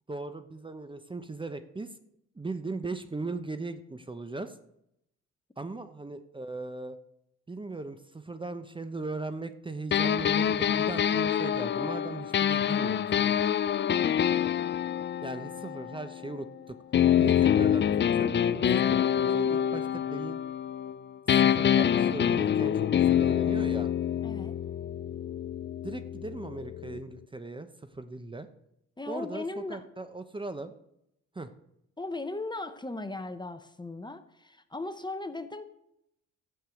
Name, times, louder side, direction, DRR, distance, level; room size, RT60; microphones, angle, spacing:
voice 1, 0.1-1.9 2.4-4.6 5.6-7.0 7.5-13.4 15.2-16.8 17.2-17.9 18.1-19.0 19.3-20.4 21.3-23.9 25.8-27.7 27.9-28.5 29.1-30.7 31.3-31.5, right 2 dB, 15° right, 10 dB, 0.8 m, -38 dB
sound 1, 9.9-16.4 16.9-21.0 21.3-27.0, left 9 dB, 40° left, 0.5 m, -26 dB
voice 2, 13.9-14.2 24.2-24.5 29.0-29.9 32.0-35.7, left 2 dB, 15° left, 10 dB, 0.9 m, -37 dB
13.0 x 6.7 x 7.9 m, 0.80 s
cardioid pair, 90°, 30 cm